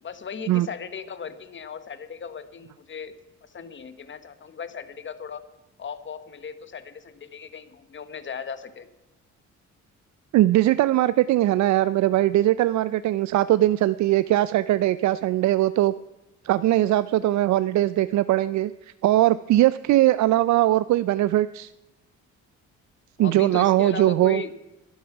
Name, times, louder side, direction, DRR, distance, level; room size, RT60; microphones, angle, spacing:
voice 1, 0.0-3.1 3.4-5.4 5.8-8.9 23.2-24.5, left 7 dB, 40° left, 12 dB, 1.2 m, -37 dB
voice 2, 10.3-15.9 16.4-21.7 23.2-24.4, right 15 dB, 70° right, 15 dB, 0.4 m, -20 dB
12.0 x 11.0 x 5.8 m, 1.0 s
cardioid pair, 90°, 30 cm